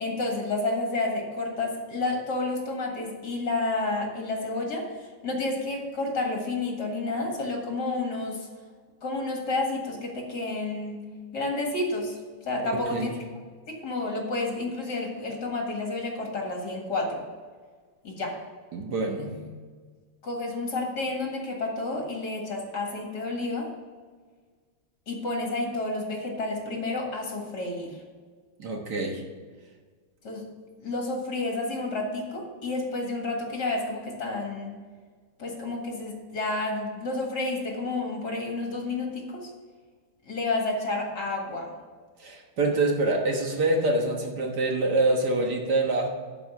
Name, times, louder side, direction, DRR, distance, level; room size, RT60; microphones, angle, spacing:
voice 1, 0.0-8.5 9.0-11.0 11.3-12.2 12.5-13.1 13.7-17.2 18.0-18.4 20.2-23.7 25.1-27.9 30.2-30.4 30.8-34.7 35.4-39.5 40.3-41.7, left 2 dB, 60° left, 0 dB, 2.4 m, -30 dB
voice 2, 12.7-13.2 18.7-19.5 28.6-29.2 42.2-46.1, right 2 dB, 60° right, 1 dB, 1.7 m, -26 dB
11.0 x 5.0 x 7.1 m, 1.5 s
omnidirectional pair, 2.1 m